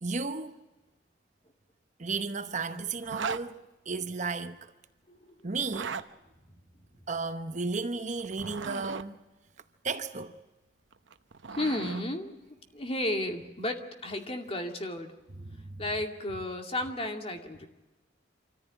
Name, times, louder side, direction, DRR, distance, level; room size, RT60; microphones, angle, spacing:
voice 1, 0.0-0.6 2.0-4.6 5.4-6.0 7.1-9.2 9.8-10.4 15.5-15.8, right 4 dB, 40° right, 0.9 m, -34 dB
Zipper (clothing), 3.0-3.4 5.6-6.1 8.2-9.1 10.9-12.0, right 5 dB, 80° right, 0.9 m, -37 dB
voice 2, 11.5-12.3 12.7-15.2 15.8-17.7, left 1 dB, 30° left, 2.4 m, -33 dB
26.5 x 14.5 x 9.1 m
head